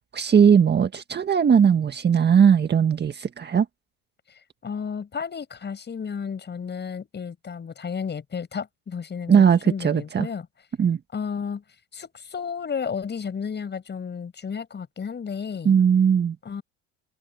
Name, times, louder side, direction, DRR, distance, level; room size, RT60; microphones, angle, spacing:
voice 1, 0.1-3.6 9.3-10.3 10.8-11.0 15.6-16.4, right 7 dB, 30° right, 1.7 m, -19 dB
voice 2, 4.6-10.5 11.1-11.6 11.9-15.7 16.4-16.6, left 6 dB, 30° left, 7.7 m, -32 dB
supercardioid pair, 115°, 35 cm